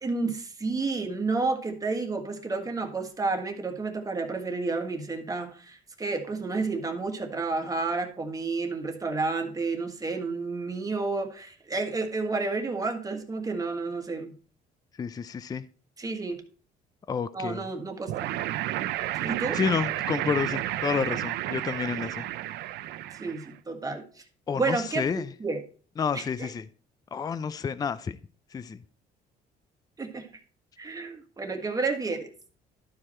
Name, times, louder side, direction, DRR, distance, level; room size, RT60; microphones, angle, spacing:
voice 1, 0.0-14.3 16.0-16.4 17.3-18.5 19.1-19.6 23.1-24.2 24.5-25.0 25.4-25.6 26.1-26.5 30.0-30.3 30.8-32.3, right 3 dB, 20° right, 1.5 m, -31 dB
voice 2, 15.0-15.7 17.1-17.6 19.5-22.3 24.5-25.3 26.0-26.7 27.1-28.2 28.5-28.8, left 6 dB, 20° left, 0.4 m, -30 dB
sound 1, 18.1-23.5, right 14 dB, 80° right, 0.5 m, -31 dB
12.0 x 4.8 x 4.3 m
cardioid pair, 110°, 17 cm